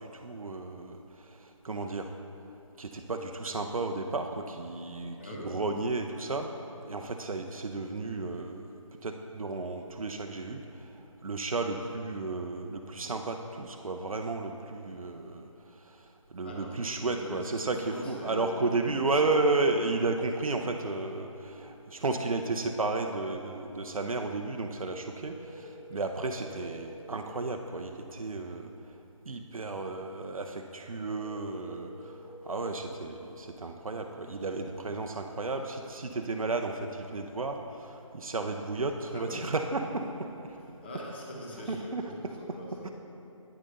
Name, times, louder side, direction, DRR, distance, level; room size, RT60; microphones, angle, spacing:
voice 1, 0.0-2.1 2.8-5.2 5.4-6.5 6.9-8.7 9.0-10.9 11.2-15.4 15.8-16.0 16.3-28.7 29.3-32.2 32.4-40.6 41.7-42.0 42.8-42.9, right 3 dB, 85° right, 4 dB, 0.6 m, -33 dB
voice 2, 5.2-5.6 16.4-19.3 39.1-39.5 40.6-42.9, left 1 dB, 20° left, -2 dB, 0.8 m, -42 dB
sound 1, 25.2-27.2 31.1-33.2, equal, 10° right, 0.8 m, -48 dB
9.0 x 6.4 x 3.9 m, 2.9 s
figure-of-eight pair, 160°, 17 cm